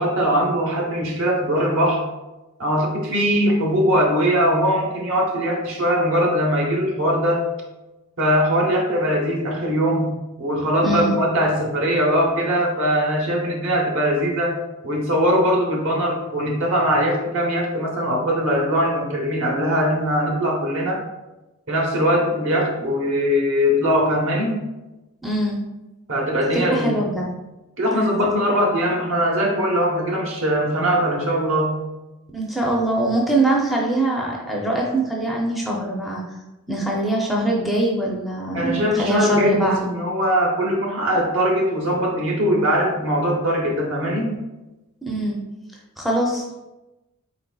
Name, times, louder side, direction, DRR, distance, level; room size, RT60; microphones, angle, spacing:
voice 1, 0.0-2.0 2.6-7.5 8.2-14.6 14.8-21.0 21.7-24.6 26.1-26.9 27.8-31.8 38.5-44.4, equal, 60° right, -1 dB, 0.9 m, -21 dB
voice 2, 10.8-11.2 25.2-25.6 26.5-27.3 28.2-28.3 32.3-36.2 36.7-39.9 45.0-45.4 46.0-46.6, right 1 dB, ahead, -3 dB, 0.5 m, -22 dB
4.3 x 3.9 x 2.3 m, 1.0 s
head